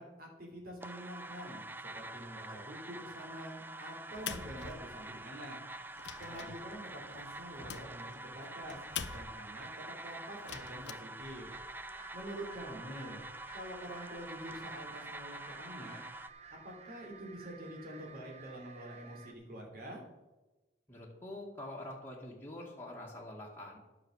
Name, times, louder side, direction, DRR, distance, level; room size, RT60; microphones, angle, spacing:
voice 1, 0.0-5.6 6.2-8.8 9.1-11.5 12.1-13.2 13.5-16.0 16.6-20.0, right 1 dB, 50° right, 0 dB, 3.2 m, -46 dB
sound 1, 0.8-16.3, right 2 dB, 10° right, 0.4 m, -46 dB
sound 2, 4.1-5.3 5.7-9.6 10.3-10.9, left 8 dB, 70° left, 0.6 m, -45 dB
voice 2, 6.2-6.5 20.9-23.8, left 1 dB, 10° left, -4 dB, 1.9 m, -46 dB
sound 3, 11.2-19.3, right 5 dB, 35° right, 0.8 m, -54 dB
10.5 x 6.8 x 6.3 m, 1.1 s
head